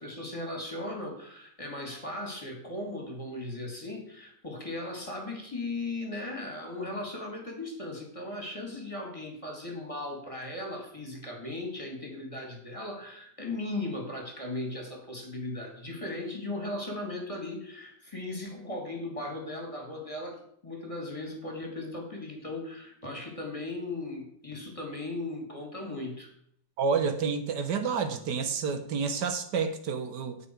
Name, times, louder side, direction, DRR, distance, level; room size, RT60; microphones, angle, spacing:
voice 1, 0.0-26.3, left 2 dB, 20° left, 1 dB, 2.3 m, -37 dB
voice 2, 26.8-30.4, right 5 dB, 70° right, 8 dB, 1.6 m, -29 dB
17.0 x 5.8 x 4.6 m, 0.67 s
omnidirectional pair, 1.9 m